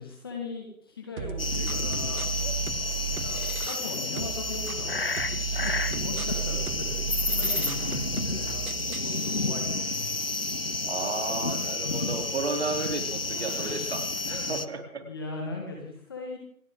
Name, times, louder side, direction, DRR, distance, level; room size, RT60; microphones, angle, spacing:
voice 1, 0.0-2.3 3.1-5.0 5.9-8.6 8.9-10.1 15.0-16.4, left 3 dB, 15° left, 0 dB, 1.7 m, -38 dB
sound 1, 1.2-3.9 4.2-9.2, right 7 dB, 70° right, 0.6 m, -34 dB
sound 2, 1.4-14.7, left 3 dB, 40° left, 0.6 m, -30 dB
voice 2, 10.9-15.0, right 3 dB, 45° right, 4 dB, 3.5 m, -33 dB
28.5 x 11.0 x 3.8 m, 0.66 s
figure-of-eight pair, 165°, 44 cm